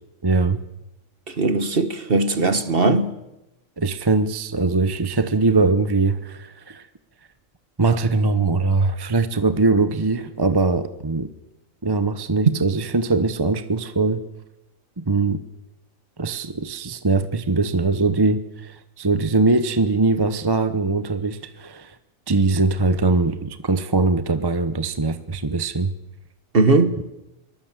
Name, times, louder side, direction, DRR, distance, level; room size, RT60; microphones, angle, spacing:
voice 1, 0.2-0.6 3.8-6.9 7.8-11.3 11.8-14.2 15.0-15.4 16.2-22.0 22.3-25.9, right 3 dB, 20° right, 0.8 m, -21 dB
voice 2, 1.3-3.1 26.5-26.9, right 3 dB, 45° right, 1.6 m, -19 dB
23.5 x 19.5 x 7.5 m
omnidirectional pair, 1.4 m